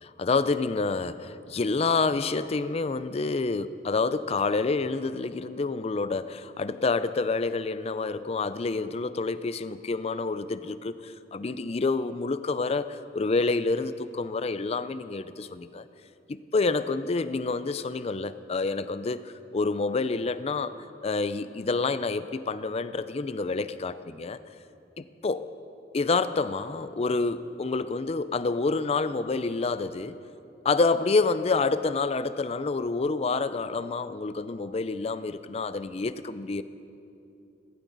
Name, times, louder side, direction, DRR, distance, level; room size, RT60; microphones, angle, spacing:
voice 1, 0.0-15.8 16.3-20.7 21.0-24.4 25.0-25.5 25.9-30.2 30.6-36.6, left 3 dB, 35° left, 13 dB, 0.4 m, -28 dB
17.0 x 15.5 x 4.0 m, 2.7 s
head